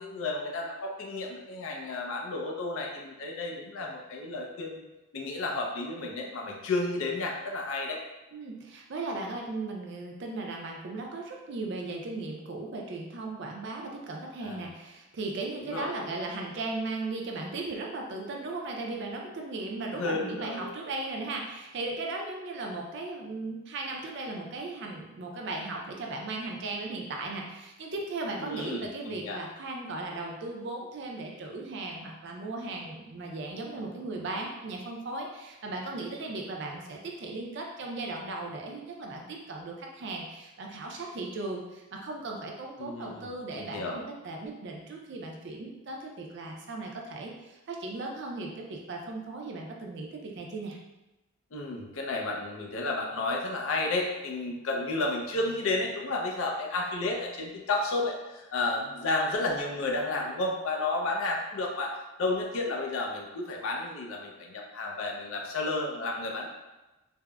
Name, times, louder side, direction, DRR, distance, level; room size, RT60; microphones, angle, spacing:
voice 1, 0.0-4.8 5.1-8.0 14.4-14.7 15.6-15.9 19.9-20.7 28.4-29.4 42.8-44.0 51.5-61.9 62.2-66.5, left 2 dB, 70° left, 0 dB, 0.5 m, -32 dB
voice 2, 8.3-50.8, right 2 dB, 55° right, 0 dB, 0.4 m, -37 dB
3.4 x 2.0 x 2.2 m, 1.0 s
head